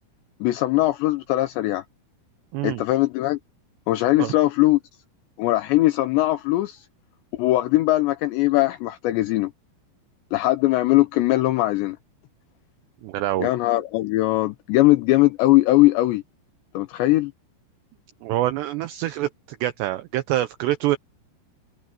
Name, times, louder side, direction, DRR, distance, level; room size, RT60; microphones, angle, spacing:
voice 1, 0.4-1.8 2.6-3.4 3.9-4.8 5.4-6.8 7.3-9.5 10.3-12.0 13.4-16.2 16.7-17.3, left 17 dB, 80° left, 2.8 m, -20 dB
voice 2, 13.0-13.5 18.2-19.3 19.6-21.0, right 14 dB, 80° right, 2.7 m, -25 dB
omnidirectional pair, 5.6 m